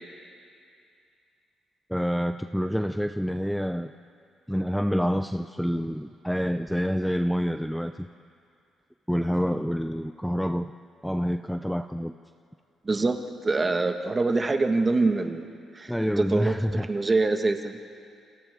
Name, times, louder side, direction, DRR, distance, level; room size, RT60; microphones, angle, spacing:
voice 1, 1.9-3.9 4.5-8.1 9.1-10.7 11.0-12.1 15.9-16.9, equal, ahead, 8 dB, 0.5 m, -27 dB
voice 2, 12.8-15.5 15.7-17.8, right 3 dB, 25° right, 5 dB, 1.5 m, -25 dB
29.5 x 27.5 x 3.7 m, 2.4 s
cardioid pair, 90°, 0 cm